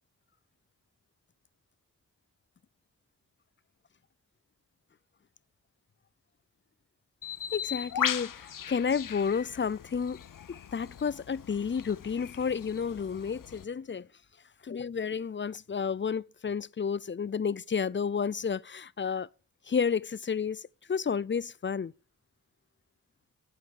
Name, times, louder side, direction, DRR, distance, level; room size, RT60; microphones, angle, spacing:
Bird, 7.2-13.6, left 9 dB, 70° left, 0.7 m, -38 dB
voice 1, 7.5-10.2 10.5-14.1 14.6-19.3 19.7-21.9, left 6 dB, 35° left, 0.5 m, -31 dB
11.5 x 8.2 x 6.5 m
cardioid pair, 55°, 33 cm